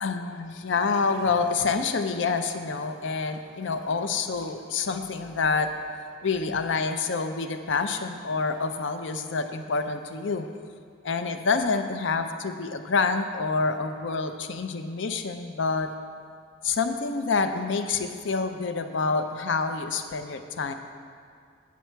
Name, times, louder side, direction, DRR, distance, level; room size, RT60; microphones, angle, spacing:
voice 1, 0.0-5.7 6.2-10.5 11.0-15.9 16.6-20.7, left 4 dB, 65° left, 8 dB, 0.5 m, -27 dB
9.2 x 7.4 x 4.5 m, 2.1 s
head